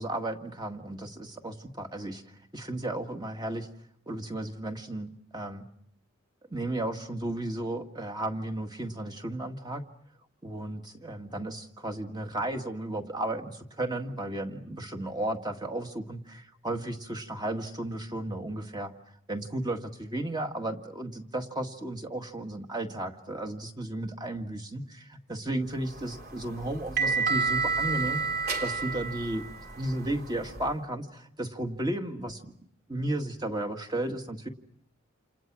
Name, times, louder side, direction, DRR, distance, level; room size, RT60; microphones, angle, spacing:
voice 1, 0.0-2.2 2.5-3.7 4.1-5.7 6.5-9.8 10.4-18.9 19.3-28.2 28.6-29.4 29.8-32.5 32.9-34.5, right 1 dB, 20° right, 4 dB, 1.9 m, -34 dB
sound 1, 25.9-30.7, right 4 dB, 50° right, 3.2 m, -30 dB
29.0 x 28.0 x 6.2 m, 0.71 s
head